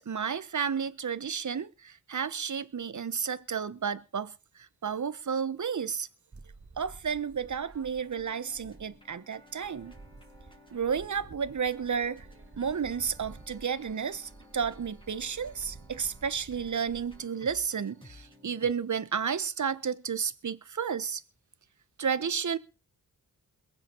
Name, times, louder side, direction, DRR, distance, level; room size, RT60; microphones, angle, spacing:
voice 1, 0.0-6.1 6.8-9.9 10.7-12.3 12.6-21.2 22.0-22.6, right 7 dB, 55° right, 1.3 m, -32 dB
sound 1, 6.3-9.2 9.5-17.2, right 3 dB, 40° right, 2.1 m, -52 dB
sound 2, 7.9-18.7, left 1 dB, 15° left, 5.8 m, -57 dB
22.0 x 8.1 x 4.7 m
cardioid pair, 65°, 35 cm